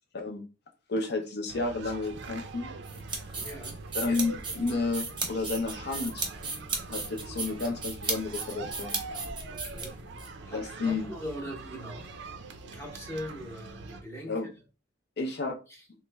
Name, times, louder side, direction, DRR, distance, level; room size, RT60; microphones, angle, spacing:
voice 1, 0.9-2.7 3.9-6.3 6.9-9.0 10.5-11.1 14.2-14.5 15.2-15.6, left 3 dB, 55° left, 0.5 m, -31 dB
sound 1, 1.5-14.0, right 3 dB, 60° right, 0.5 m, -43 dB
sound 2, 2.8-10.3, right 4 dB, 25° right, 0.7 m, -35 dB
voice 2, 3.4-3.8 9.5-10.0 10.5-12.1 12.6-14.4, equal, 15° left, 0.7 m, -41 dB
3.1 x 2.1 x 3.3 m
head